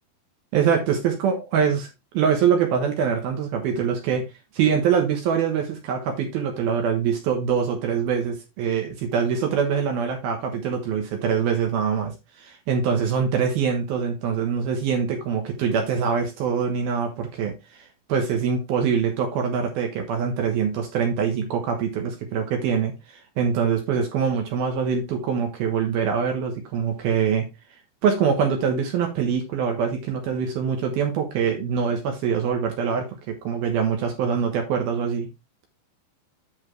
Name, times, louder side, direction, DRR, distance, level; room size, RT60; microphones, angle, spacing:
voice 1, 0.5-1.9 2.1-4.3 4.5-12.1 12.4-27.5 28.0-35.3, right 7 dB, 65° right, 2.5 m, -24 dB
8.1 x 7.1 x 3.2 m
omnidirectional pair, 5.8 m